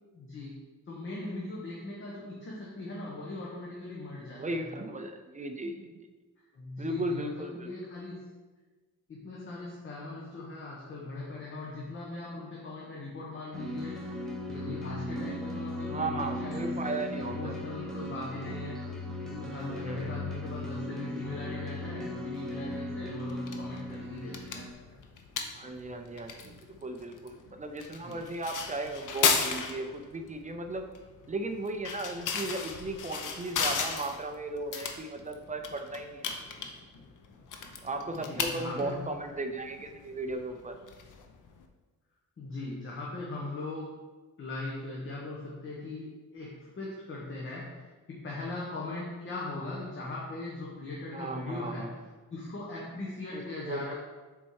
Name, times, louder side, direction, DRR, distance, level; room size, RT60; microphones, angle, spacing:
voice 1, 0.1-0.6 0.9-4.7 6.5-8.2 9.1-14.2 14.5-25.0 25.6-26.0 26.3-26.4 28.0-28.2 35.2-35.3 36.3-37.9 38.2-39.2 42.4-44.0 44.4-52.0 52.3-53.9, left 2 dB, 40° left, -4 dB, 1.1 m, -40 dB
voice 2, 4.3-6.1 6.8-7.7 15.9-17.6 19.8-20.2 25.5-30.9 31.3-36.3 37.8-40.8 51.1-51.9 53.3-53.9, right 2 dB, 25° right, 5 dB, 0.4 m, -36 dB
sound 1, 13.5-24.7, left 1 dB, ahead, 0.9 m, -37 dB
sound 2, 23.3-41.6, left 6 dB, 65° left, 0.8 m, -36 dB
7.1 x 4.3 x 4.6 m, 1.3 s
wide cardioid pair, 175°, 33 cm